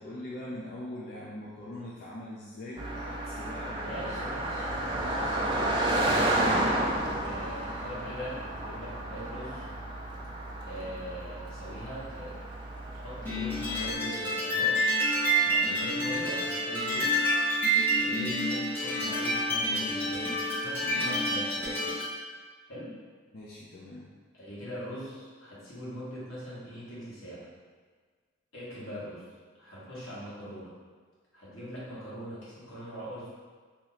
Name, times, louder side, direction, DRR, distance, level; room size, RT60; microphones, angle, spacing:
voice 1, 0.0-4.4 7.9-8.2 15.9-16.3 23.3-24.1, left 1 dB, 50° left, -6 dB, 0.4 m, -42 dB
Car passing by, 2.8-13.9, right 1 dB, 25° right, 0.4 m, -31 dB
voice 2, 3.8-5.8 7.2-9.7 10.6-12.4 13.0-14.8 15.4-17.1 18.0-21.9 22.7-22.9 24.3-27.5 28.5-29.2 29.6-30.7 31.3-33.3, equal, 90° left, -9 dB, 1.4 m, -41 dB
sound 1, 13.2-22.1, right 1 dB, 10° left, 0.7 m, -28 dB
2.9 x 2.6 x 4.0 m, 1.5 s
head